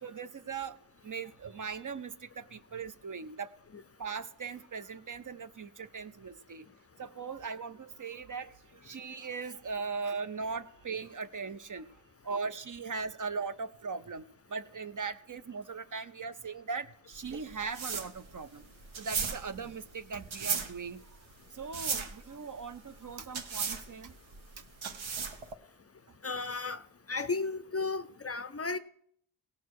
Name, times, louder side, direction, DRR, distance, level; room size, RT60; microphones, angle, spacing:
voice 1, 0.0-3.5 4.0-6.7 7.0-11.9 12.2-18.6 19.0-21.0 21.5-24.1, right 5 dB, 40° right, 0.6 m, -39 dB
sound 1, 17.1-25.5, right 5 dB, 75° right, 1.0 m, -37 dB
voice 2, 26.2-28.8, left 3 dB, 30° left, 0.4 m, -34 dB
17.0 x 6.4 x 4.7 m
wide cardioid pair, 75°, 47 cm